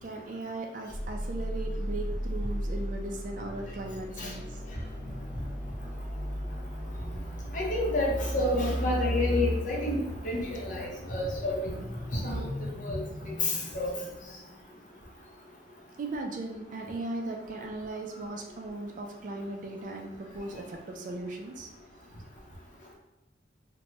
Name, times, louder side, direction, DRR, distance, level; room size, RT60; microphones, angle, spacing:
voice 1, 0.0-4.6 16.0-21.7, right 2 dB, 45° right, 2 dB, 0.4 m, -38 dB
sound 1, 0.9-14.7, equal, 15° right, 1.3 m, -35 dB
voice 2, 7.5-10.0 10.2-11.8 12.1-13.0 13.4-13.9, left 1 dB, 45° left, -2 dB, 0.7 m, -30 dB
2.7 x 2.1 x 3.0 m, 0.97 s
head